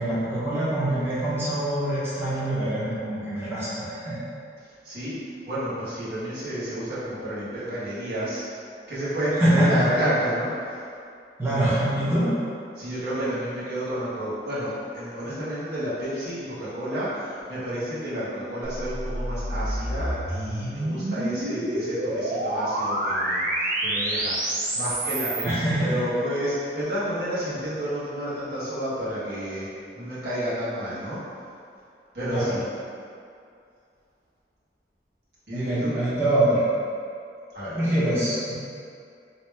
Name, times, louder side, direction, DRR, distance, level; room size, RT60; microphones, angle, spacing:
voice 1, 0.0-4.2 9.4-9.8 11.4-12.3 25.4-25.9 32.3-32.5 35.5-36.7 37.7-38.5, right 1 dB, 15° right, -12 dB, 0.8 m, -24 dB
voice 2, 4.6-5.2 5.5-8.4 8.9-10.8 12.7-29.7 29.9-31.2 32.1-32.6 35.5-36.0 37.5-37.8, equal, 70° right, -11 dB, 1.3 m, -30 dB
sound 1, 18.6-25.5, right 1 dB, 50° right, 0.5 m, -28 dB
3.3 x 2.9 x 3.3 m, 2.4 s
head